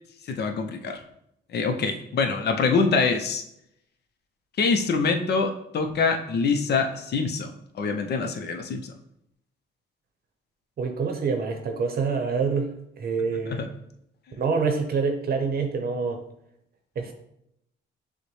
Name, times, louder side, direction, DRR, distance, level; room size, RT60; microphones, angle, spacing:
voice 1, 0.3-1.0 1.5-3.4 4.6-8.9 13.3-13.7, left 4 dB, 55° left, 6 dB, 0.6 m, -25 dB
voice 2, 10.8-12.7 13.0-13.6 14.4-16.2 17.0-17.1, right 5 dB, 50° right, 5 dB, 0.7 m, -26 dB
6.4 x 2.2 x 3.2 m, 0.78 s
cardioid pair, 90°, 20 cm